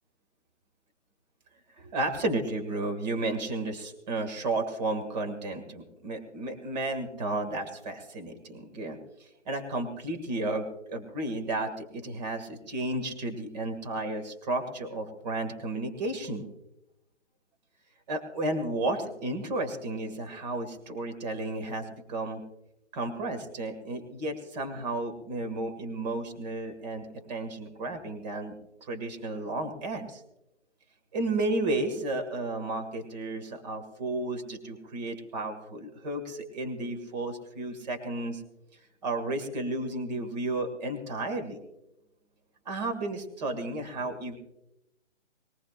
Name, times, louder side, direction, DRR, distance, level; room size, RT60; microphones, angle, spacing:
voice 1, 1.8-16.4 18.1-22.4 22.9-30.2 31.1-38.4 39.0-41.6 42.7-44.4, right 2 dB, 35° right, 5 dB, 1.9 m, -33 dB
21.0 x 18.5 x 2.5 m, 0.90 s
figure-of-eight pair, 145°, 35 cm